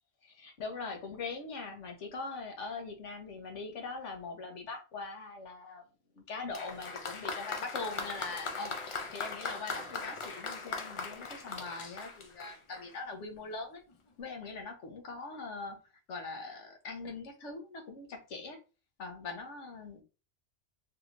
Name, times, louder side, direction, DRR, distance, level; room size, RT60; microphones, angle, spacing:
voice 1, 0.2-5.8 6.1-13.8 14.2-15.8 16.1-18.6 19.0-20.0, left 3 dB, 75° left, 3 dB, 1.2 m, -42 dB
Applause, 6.5-13.0 13.9-14.0, left 4 dB, 45° left, 0.4 m, -40 dB
3.3 x 3.1 x 2.5 m, 0.32 s
omnidirectional pair, 1.2 m